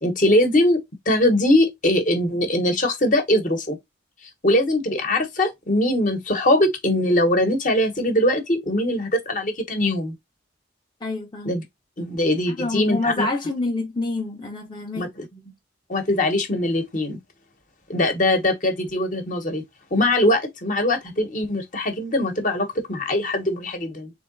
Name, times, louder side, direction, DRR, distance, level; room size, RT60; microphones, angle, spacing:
voice 1, 0.0-3.8 4.4-10.1 11.4-11.6 12.0-13.3 14.9-15.2 15.9-17.2 17.9-19.6 19.9-24.1, left 1 dB, 45° left, 1.1 m, -21 dB
voice 2, 11.0-11.5 12.5-15.5, left 2 dB, 25° left, 0.8 m, -28 dB
3.8 x 3.4 x 3.9 m
head